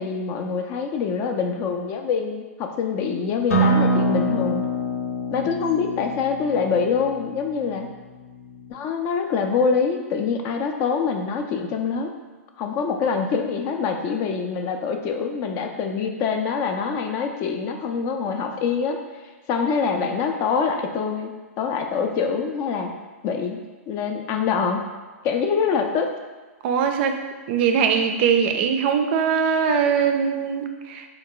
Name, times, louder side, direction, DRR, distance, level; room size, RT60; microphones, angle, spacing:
voice 1, 0.0-4.7 5.3-7.9 8.7-12.1 12.6-19.0 19.5-21.3 21.6-22.9 23.2-23.6 23.9-24.8 25.2-26.1, left 5 dB, 35° left, 4 dB, 0.4 m, -25 dB
Acoustic guitar, 3.5-8.7, right 1 dB, 75° left, 0.9 m, -25 dB
voice 2, 26.6-27.1 27.5-31.1, right 7 dB, 45° right, 5 dB, 0.4 m, -21 dB
3.9 x 2.3 x 3.7 m, 1.3 s
hypercardioid pair, 130°, 8 cm